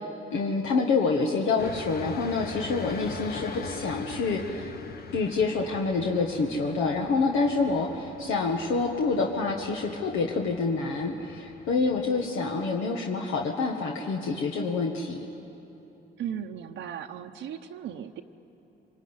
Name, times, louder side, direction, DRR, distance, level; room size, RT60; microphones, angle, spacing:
voice 1, 0.3-4.7 5.1-15.2, left 4 dB, 85° left, 1 dB, 1.5 m, -27 dB
sound 1, 1.6-12.3, left 4 dB, 50° left, 1.5 m, -42 dB
voice 2, 16.2-18.2, right 9 dB, 80° right, 2 dB, 0.9 m, -36 dB
25.0 x 20.5 x 9.7 m, 3.0 s
cardioid pair, 90°, 20 cm